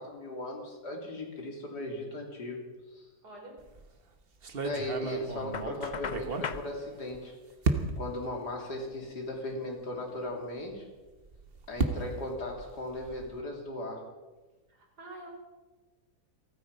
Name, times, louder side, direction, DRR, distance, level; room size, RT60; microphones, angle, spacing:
voice 1, 0.0-2.6 2.9-3.1 4.6-7.4 8.0-10.9 11.7-14.1, left 1 dB, 85° left, 1 dB, 3.7 m, -37 dB
voice 2, 3.2-3.5 14.7-15.3, right 2 dB, 80° right, 1 dB, 4.4 m, -47 dB
sound 1, 3.6-3.9 4.4-7.2 7.6-8.2 8.9-9.0 9.3-9.4 11.1-13.4, right 4 dB, 40° right, 1.3 m, -34 dB
Knock, 5.5-6.7, left 6 dB, 60° left, 0.4 m, -37 dB
28.0 x 9.5 x 5.4 m, 1.2 s
omnidirectional pair, 1.7 m